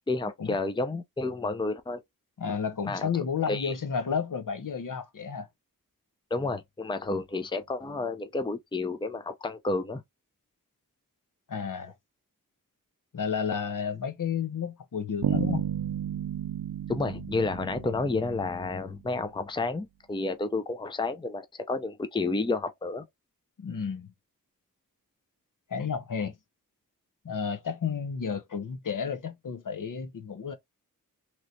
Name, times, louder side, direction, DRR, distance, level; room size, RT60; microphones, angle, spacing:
voice 1, 0.1-2.0 2.8-3.7 6.3-10.0 16.9-23.1, left 3 dB, 15° left, 0.5 m, -31 dB
voice 2, 2.4-5.5 11.5-11.9 13.1-15.7 23.6-24.1 25.7-26.4 27.2-30.5, left 6 dB, 65° left, 0.7 m, -32 dB
Bass guitar, 15.2-19.0, right 10 dB, 75° right, 0.5 m, -32 dB
3.1 x 2.9 x 2.6 m
wide cardioid pair, 50°, 35 cm